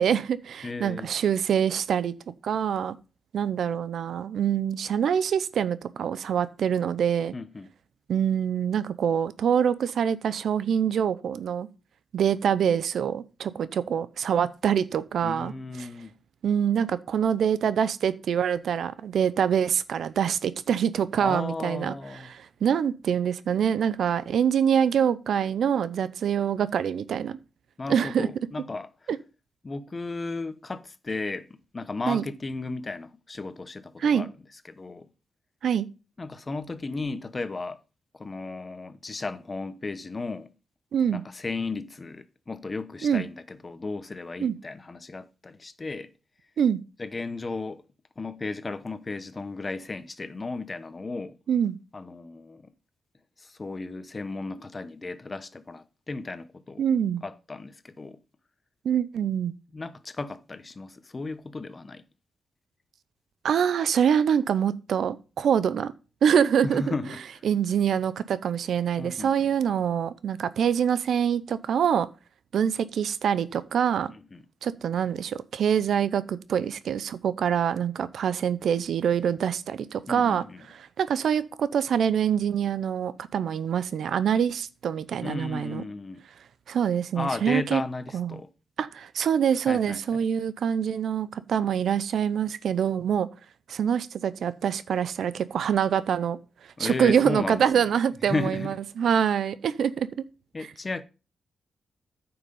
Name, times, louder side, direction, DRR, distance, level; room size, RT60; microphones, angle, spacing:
voice 1, 0.0-2.1 2.4-3.0 3.3-7.3 8.1-11.7 12.1-15.5 16.4-27.4 27.9-28.3 29.1-29.2 32.1-32.2 34.0-34.3 35.6-35.9 40.9-41.2 43.0-43.2 44.4-44.5 46.6-46.8 51.5-51.8 56.8-57.2 58.8-59.5 63.4-65.9 66.2-66.9 67.4-72.1 72.5-74.1 74.6-80.4 80.7-85.8 86.7-87.8 88.1-88.4 88.8-93.3 93.7-96.4 96.8-100.2, right 8 dB, 80° right, 0.6 m, -25 dB
voice 2, 0.6-1.1 7.3-7.7 15.2-16.1 21.2-22.3 27.8-28.9 29.6-34.3 34.7-35.1 36.2-37.8 38.1-40.5 41.1-46.1 47.0-47.8 48.2-51.4 51.9-52.7 53.4-56.8 57.2-58.2 59.7-62.0 66.6-67.4 69.0-69.5 74.1-74.4 80.1-80.6 85.2-86.2 87.1-88.5 89.7-90.2 96.8-97.7 98.2-98.8 100.5-101.0, left 3 dB, 35° left, 0.9 m, -35 dB
9.6 x 5.8 x 5.4 m
cardioid pair, 80°, 0 cm